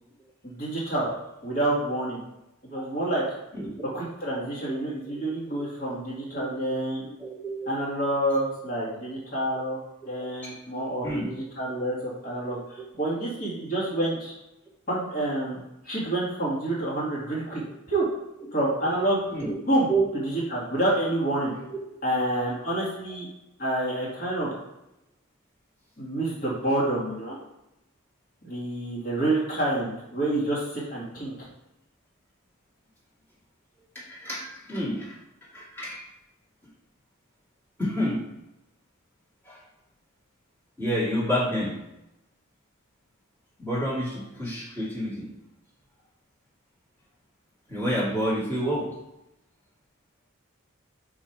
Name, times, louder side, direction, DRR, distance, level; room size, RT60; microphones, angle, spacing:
voice 1, 0.4-1.1 1.4-2.2 2.7-3.2 3.9-7.0 7.7-9.8 10.1-14.3 14.9-15.6 15.9-17.6 17.9-18.1 18.5-19.2 19.7-19.9 20.2-21.5 22.0-23.3 23.6-24.5 26.0-27.4 28.4-31.5, right 1 dB, 45° left, -6 dB, 2.1 m, -28 dB
voice 2, 3.5-3.9 5.6-5.7 6.3-6.7 7.2-7.7 9.5-9.6 11.0-11.4 12.5-12.6 19.3-19.5 19.9-20.1 33.9-35.1 35.5-36.0 37.8-38.2 39.4-39.6 40.8-41.8 43.6-45.3 47.7-48.9, equal, 10° left, -8 dB, 2.1 m, -29 dB
5.4 x 4.7 x 4.6 m, 0.89 s
head